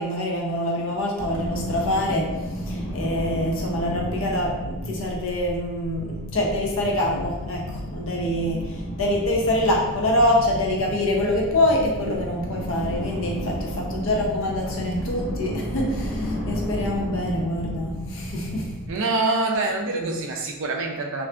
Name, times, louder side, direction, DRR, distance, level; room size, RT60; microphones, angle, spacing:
voice 1, 0.0-2.3 2.7-18.7 19.9-20.1, left 1 dB, 60° left, -1 dB, 0.5 m, -25 dB
mystic wind howling, 1.2-18.9, equal, ahead, 1.1 m, -32 dB
voice 2, 18.9-21.3, right 3 dB, 55° right, 2 dB, 0.3 m, -25 dB
2.5 x 2.3 x 2.3 m, 1.0 s
head